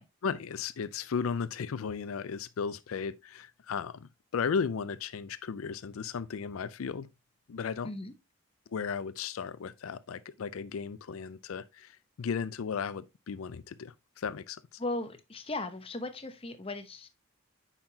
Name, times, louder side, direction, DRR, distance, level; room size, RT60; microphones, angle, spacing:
voice 1, 0.2-7.1 7.5-7.9 8.7-14.8, left 6 dB, 85° left, 0.4 m, -35 dB
voice 2, 14.8-17.1, left 2 dB, 25° left, 0.8 m, -37 dB
8.8 x 5.8 x 2.8 m
head